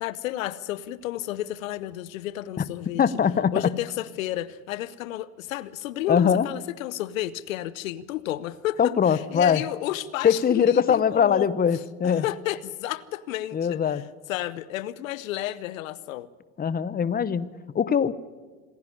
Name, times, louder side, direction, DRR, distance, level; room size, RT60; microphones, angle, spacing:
voice 1, 0.0-3.0 3.5-11.5 12.0-16.3, left 14 dB, 85° left, 17 dB, 0.8 m, -32 dB
voice 2, 3.0-3.6 6.1-6.5 8.8-9.6 10.2-12.2 13.5-14.0 16.6-18.1, left 7 dB, 25° left, 17 dB, 0.9 m, -22 dB
27.0 x 10.5 x 9.9 m, 1.3 s
hypercardioid pair, 85°, 39 cm